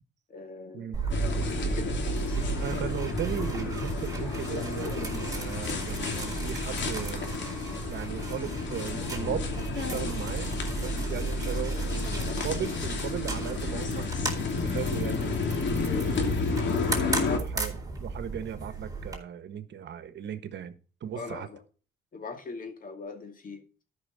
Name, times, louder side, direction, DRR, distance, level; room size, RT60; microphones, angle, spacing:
voice 1, 0.3-1.1 1.7-2.6 21.1-21.6 22.1-23.6, left 3 dB, 45° left, 2.4 m, -41 dB
sound 1, 0.9-19.2, right 4 dB, 15° right, 3.9 m, -34 dB
sound 2, 1.1-17.4, left 5 dB, 65° left, 2.7 m, -32 dB
voice 2, 2.6-7.3 7.9-14.1 14.5-16.4 17.0-21.5, right 8 dB, 65° right, 1.3 m, -37 dB
13.0 x 5.9 x 4.1 m
cardioid pair, 90°, 20 cm